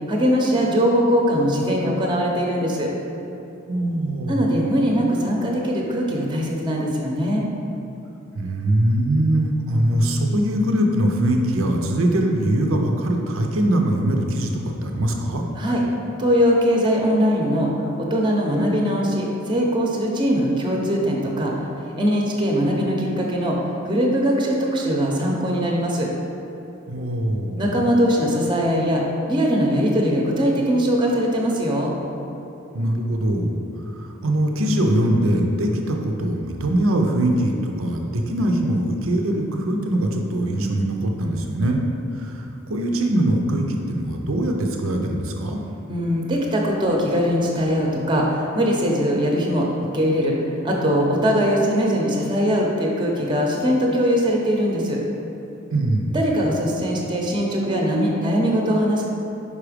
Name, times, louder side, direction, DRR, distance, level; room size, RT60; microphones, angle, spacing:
voice 1, 0.1-2.9 4.3-7.4 15.5-15.8 16.2-21.5 22.0-23.6 23.8-26.1 27.6-31.9 45.9-49.7 49.9-50.3 50.6-55.0 56.1-59.1, equal, 25° right, -1 dB, 0.7 m, -21 dB
voice 2, 3.7-4.4 8.4-15.4 26.9-27.6 32.7-33.5 33.9-41.8 42.1-42.4 42.7-45.6 55.7-56.2, right 1 dB, 80° right, 2 dB, 0.7 m, -22 dB
5.5 x 4.9 x 5.0 m, 2.9 s
head